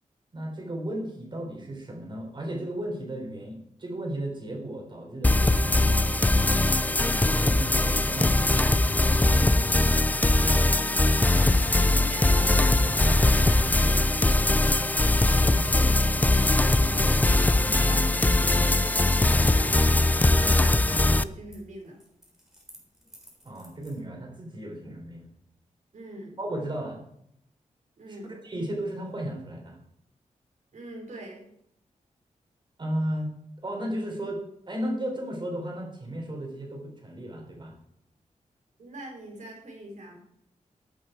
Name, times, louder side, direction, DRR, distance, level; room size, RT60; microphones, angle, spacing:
voice 1, 0.3-6.9 7.3-10.0 12.7-13.0 14.9-16.0 17.6-17.9 23.4-25.3 26.4-27.0 28.4-29.8 32.8-33.3 33.6-37.8, right 1 dB, 35° right, 1 dB, 4.3 m, -35 dB
sound 1, 5.2-21.2, left 2 dB, 10° left, 0.4 m, -21 dB
sound 2, 10.4-12.7 13.2-20.1 20.6-20.8 21.1-21.6 21.8-24.0, equal, 5° right, 3.6 m, -51 dB
voice 2, 11.3-13.7 16.7-17.2 17.7-22.0 25.9-26.4 28.0-28.4 30.7-31.4 38.8-40.2, right 1 dB, 70° right, 0 dB, 4.8 m, -43 dB
15.0 x 8.6 x 4.6 m, 0.75 s
wide cardioid pair, 115°, 13 cm